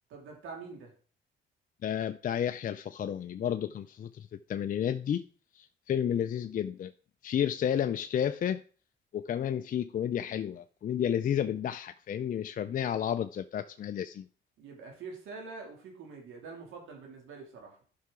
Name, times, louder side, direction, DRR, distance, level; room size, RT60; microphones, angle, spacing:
voice 1, 0.1-0.9 14.6-17.8, right 4 dB, 85° right, 2.6 m, -45 dB
voice 2, 1.8-5.2 5.5-6.9 7.2-8.6 9.1-14.2, left 9 dB, 45° left, 0.4 m, -31 dB
11.0 x 5.7 x 3.7 m
cardioid pair, 90°, 20 cm